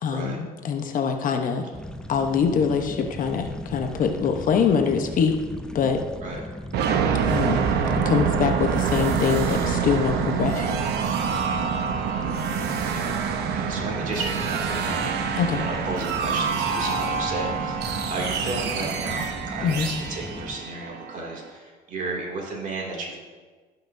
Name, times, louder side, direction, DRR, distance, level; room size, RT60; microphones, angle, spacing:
voice 1, 0.0-1.6 2.1-5.3 5.7-6.0 7.2-7.6 8.0-10.8 15.4-15.6 19.6-19.9, left 6 dB, 55° left, 5 dB, 0.9 m, -24 dB
sound 1, 1.7-20.6, left 1 dB, 5° left, 0.5 m, -38 dB
sound 2, 6.7-21.4, right 6 dB, 75° right, 0.8 m, -26 dB
voice 2, 12.0-23.2, right 2 dB, 50° right, -2 dB, 2.4 m, -34 dB
17.5 x 5.9 x 2.7 m, 1.4 s
cardioid pair, 110°, 17 cm